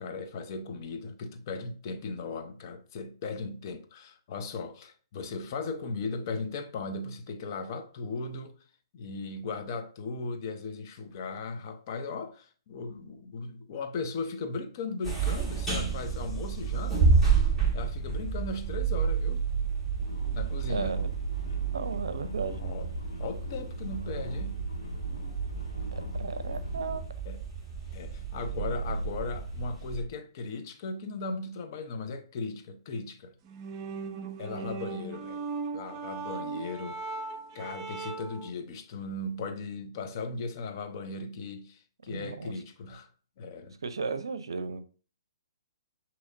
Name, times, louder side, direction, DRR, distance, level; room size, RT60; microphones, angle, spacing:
voice 1, 0.0-8.6 8.9-17.1 17.7-19.4 20.3-21.1 22.6-22.9 23.2-24.6 27.3-27.4 27.9-33.3 34.4-35.4 35.7-37.0 37.5-43.1 43.4-43.8, left 3 dB, 45° left, 0.7 m, -37 dB
sound 1, 15.0-30.0, right 5 dB, 5° left, 1.6 m, -30 dB
sound 2, 20.0-27.0, equal, 90° left, 1.8 m, -39 dB
voice 2, 20.7-21.1 21.7-22.6 25.9-27.0 34.6-34.7 42.1-42.5 43.8-44.8, right 4 dB, 80° right, 0.5 m, -35 dB
sound 3, 33.4-38.5, right 4 dB, 30° right, 0.5 m, -38 dB
6.3 x 2.9 x 2.6 m
hypercardioid pair, 130°, 2 cm